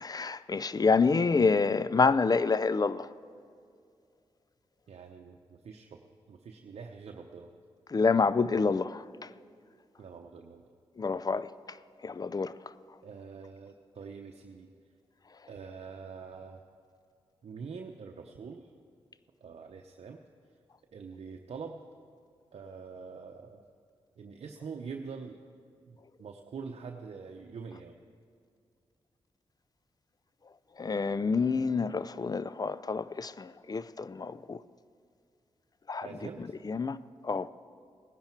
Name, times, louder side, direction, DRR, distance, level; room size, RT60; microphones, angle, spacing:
voice 1, 0.0-3.1 7.9-9.0 11.0-11.5 12.0-12.5 30.8-34.6 35.9-36.1 36.7-37.0 37.2-37.5, left 4 dB, 35° left, 0.5 m, -27 dB
voice 2, 4.9-6.0 6.3-7.5 10.0-10.6 13.0-14.7 15.5-16.6 17.4-18.7 19.4-20.2 20.9-21.8 22.5-23.6 24.2-25.4 25.9-27.9 36.0-36.5, right 5 dB, 65° right, 0.8 m, -44 dB
18.0 x 10.5 x 4.6 m
supercardioid pair, 45°, 11 cm